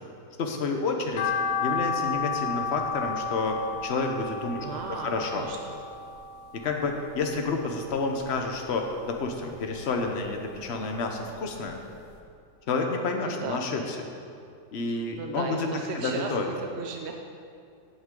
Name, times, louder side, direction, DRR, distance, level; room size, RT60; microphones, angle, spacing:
voice 1, 0.4-1.3 1.6-5.4 6.5-11.8 12.7-14.0 14.7-16.5, left 3 dB, 45° left, 3 dB, 1.1 m, -30 dB
sound 1, 1.2-7.5 7.8-9.0 9.3-10.8 11.1-11.2 11.7-11.8 12.0-12.1, left 5 dB, 80° left, 1.6 m, -32 dB
voice 2, 4.6-5.8 13.2-13.6 15.2-17.1, right 5 dB, 65° right, 3 dB, 0.7 m, -36 dB
15.5 x 6.1 x 3.8 m, 2.4 s
omnidirectional pair, 1.7 m